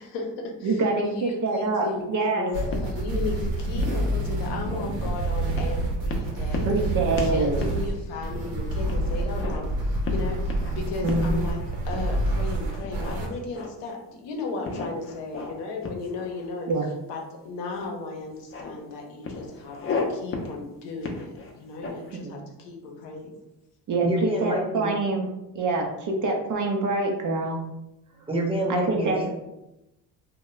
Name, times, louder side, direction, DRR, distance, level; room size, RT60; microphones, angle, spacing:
voice 1, 0.0-2.1 2.3-6.7 7.1-16.7 17.1-23.3, left 3 dB, 65° left, 1 dB, 0.7 m, -35 dB
voice 2, 0.6-2.5 6.6-7.8 11.0-11.4 16.7-16.9 22.1-22.3 23.9-25.3 25.5-27.6 28.7-29.2, right 3 dB, 45° right, 2 dB, 0.6 m, -25 dB
sound 1, 2.5-13.3, right 1 dB, 75° right, 0.8 m, -28 dB
sound 2, 2.7-3.4 3.8-5.1 5.6-5.8 6.1-6.9 7.2-7.3 7.6-7.8 8.2-8.3 8.9-9.6 10.0-10.7 11.1-11.3 11.9-12.4 12.8-13.9 14.6-15.6 15.8-16.7 17.7-17.9 18.2-18.7 19.2-20.1 20.3-20.5 21.0-22.1, left 4 dB, 30° left, 0.5 m, -34 dB
voice 3, 24.0-24.9 28.3-29.3, right 1 dB, 10° right, -2 dB, 0.8 m, -27 dB
2.2 x 2.2 x 3.0 m, 0.91 s
supercardioid pair, 75°, 45 cm